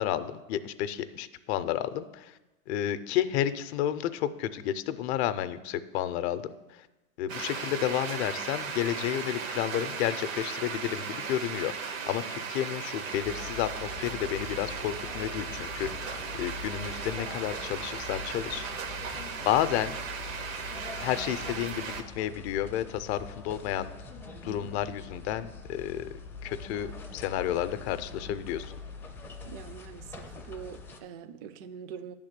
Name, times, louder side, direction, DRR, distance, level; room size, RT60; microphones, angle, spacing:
voice 1, 0.0-2.4 2.7-6.9 7.2-18.7 19.4-20.0 21.0-23.9 24.4-26.1 26.4-28.8, left 11 dB, 55° left, 11 dB, 0.5 m, -31 dB
sound 1, 7.3-22.0, right 6 dB, 70° right, 1.0 m, -37 dB
sound 2, 13.2-31.0, left 4 dB, 5° left, 0.4 m, -43 dB
voice 2, 29.5-32.1, right 7 dB, 45° right, 11 dB, 0.5 m, -43 dB
9.7 x 3.6 x 6.6 m, 1.1 s
supercardioid pair, 135°, 40 cm